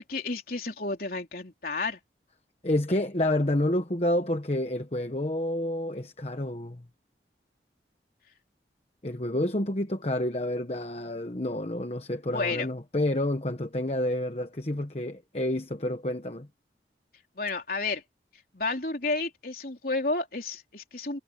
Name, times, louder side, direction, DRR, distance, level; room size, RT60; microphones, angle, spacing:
voice 1, 0.0-2.0 9.3-9.6 12.3-12.7 17.4-18.0 18.5-21.2, left 3 dB, 55° left, 3.9 m, -31 dB
voice 2, 2.6-6.8 9.0-16.5, left 1 dB, 35° left, 1.2 m, -29 dB
head